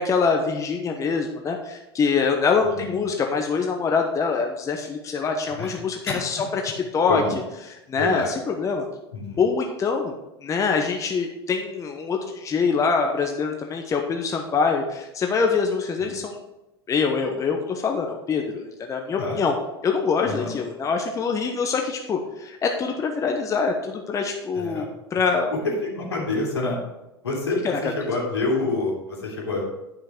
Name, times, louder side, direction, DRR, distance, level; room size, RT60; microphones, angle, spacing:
voice 1, 0.0-7.2 7.9-8.9 9.4-10.1 10.4-16.4 16.9-19.5 19.8-25.5, left 5 dB, 25° left, 3 dB, 1.0 m, -24 dB
voice 2, 2.7-3.0 5.5-5.8 6.0-6.2 7.1-7.3 8.0-8.3 9.1-9.4 16.0-16.2 19.2-19.4 20.2-20.5 24.5-24.9 25.9-26.8 27.2-29.6, left 2 dB, 80° left, -3 dB, 3.2 m, -27 dB
10.0 x 5.9 x 4.5 m, 0.95 s
figure-of-eight pair, 85°, 14 cm